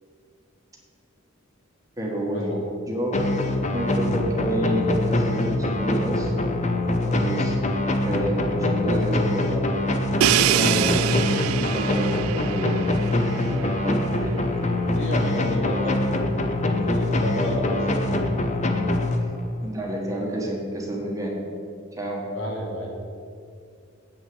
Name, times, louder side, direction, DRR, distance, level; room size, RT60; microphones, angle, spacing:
voice 1, 2.0-2.6 2.9-3.4 3.7-6.3 7.0-7.6 8.0-9.7 10.5-11.2 11.5-12.8 13.5-14.4 19.2-19.3 19.6-21.4 22.0-22.2, right 1 dB, 15° right, -2 dB, 1.4 m, -29 dB
sound 1, 3.1-19.6, left 2 dB, 35° left, 0.8 m, -24 dB
Crash cymbal, 10.2-14.0, right 11 dB, 90° right, 0.3 m, -25 dB
voice 2, 14.9-16.2 16.7-18.2 22.3-22.9, equal, 65° left, -2 dB, 2.4 m, -30 dB
8.2 x 6.4 x 7.8 m, 2.3 s
head